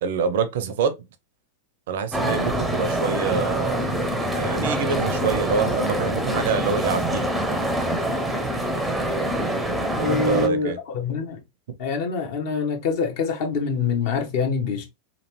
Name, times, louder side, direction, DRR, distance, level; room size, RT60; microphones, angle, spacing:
voice 1, 0.0-1.0 1.9-3.9 4.2-7.3 10.0-10.8, right 6 dB, 55° right, 0.5 m, -26 dB
sound 1, 2.1-10.5, right 1 dB, 5° right, 0.6 m, -25 dB
voice 2, 9.9-11.4 11.8-14.8, left 5 dB, 50° left, 0.9 m, -25 dB
3.1 x 2.5 x 3.0 m
figure-of-eight pair, 90°, 0 cm